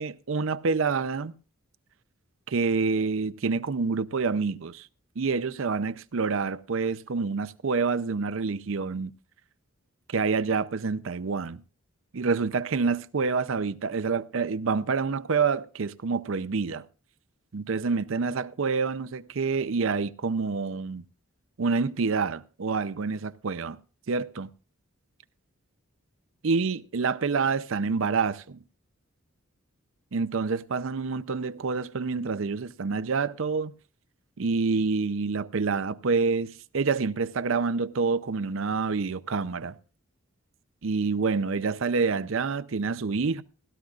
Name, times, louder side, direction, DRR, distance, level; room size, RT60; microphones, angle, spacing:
voice 1, 0.0-1.3 2.5-4.9 5.2-9.1 10.1-11.6 12.1-16.8 17.5-21.0 21.6-23.8 24.1-24.5 26.4-28.6 30.1-33.7 34.4-39.7 40.8-43.4, right 4 dB, 65° right, 0.5 m, -27 dB
16.5 x 13.0 x 2.5 m
head